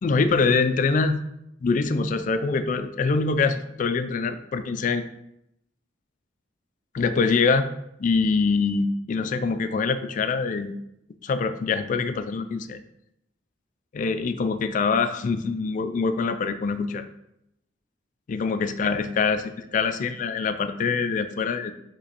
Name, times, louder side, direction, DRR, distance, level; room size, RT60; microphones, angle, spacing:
voice 1, 0.0-1.2 1.6-5.0 6.9-7.7 8.0-10.7 11.2-12.8 13.9-17.1 18.3-21.7, left 4 dB, 40° left, 9 dB, 0.3 m, -24 dB
6.0 x 3.0 x 2.9 m, 0.81 s
head